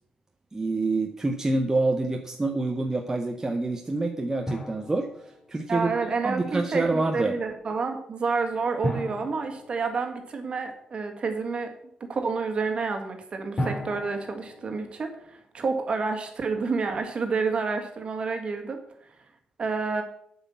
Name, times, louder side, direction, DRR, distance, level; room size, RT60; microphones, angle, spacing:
voice 1, 0.5-5.1 5.5-5.9 6.2-7.3, right 2 dB, 20° right, 4 dB, 0.8 m, -27 dB
Drum, 4.5-5.9 8.8-10.6 13.6-15.2, equal, 30° left, 2.9 m, -35 dB
voice 2, 5.7-11.7 12.1-18.8 19.0-19.1 19.6-20.0, right 4 dB, 40° right, 5 dB, 1.8 m, -29 dB
8.1 x 5.7 x 7.0 m, 0.70 s
cardioid pair, 105°, 3 cm